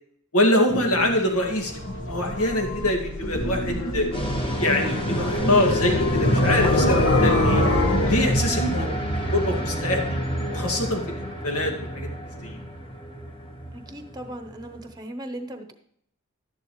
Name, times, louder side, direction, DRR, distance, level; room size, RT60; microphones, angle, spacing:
voice 1, 0.3-4.1 4.6-7.6 8.1-10.2 10.5-11.0 11.4-12.1 12.4-12.6, left 1 dB, 80° left, 3 dB, 2.1 m, -24 dB
sound 1, 0.7-8.9, left 1 dB, 60° left, 1.4 m, -24 dB
sound 2, 4.1-14.9, right 1 dB, 25° left, 1.4 m, -29 dB
voice 2, 8.4-8.8 13.7-15.7, right 1 dB, 20° right, 7 dB, 0.9 m, -37 dB
12.0 x 10.5 x 3.2 m, 0.70 s
head